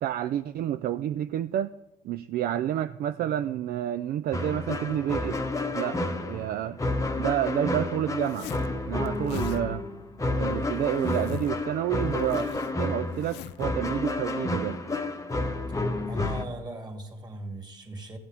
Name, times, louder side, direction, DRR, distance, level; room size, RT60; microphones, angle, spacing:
voice 1, 0.0-1.7 2.0-5.5 5.7-6.0 6.3-6.8 7.2-8.5 8.9-9.9 10.4-12.5 12.8-14.8, right 11 dB, 55° right, 0.4 m, -29 dB
sound 1, 4.3-16.5, left 2 dB, 15° left, 0.9 m, -30 dB
Zipper (clothing), 8.2-8.7 9.1-9.6 10.5-11.6 11.9-13.7, left 12 dB, 70° left, 0.4 m, -43 dB
voice 2, 16.1-18.2, right 2 dB, 25° right, 2.2 m, -39 dB
14.5 x 7.3 x 3.4 m
supercardioid pair, 70°, 18 cm